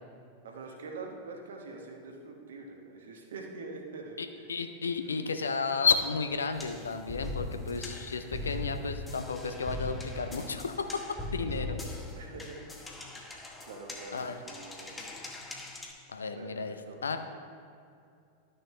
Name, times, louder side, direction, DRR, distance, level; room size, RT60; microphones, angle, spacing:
voice 1, 0.4-4.2 7.7-8.0 12.2-12.6 13.3-14.9 16.3-16.6 16.9-17.2, right 3 dB, 65° right, 1 dB, 1.1 m, -45 dB
voice 2, 4.2-11.0 11.3-12.0 14.1-14.4 16.1-17.2, left 5 dB, 70° left, 8 dB, 0.5 m, -32 dB
sound 1, 6.5-15.9, left 2 dB, 10° left, 1.0 m, -40 dB
12.0 x 6.4 x 3.2 m, 2.4 s
figure-of-eight pair, 90°, 0 cm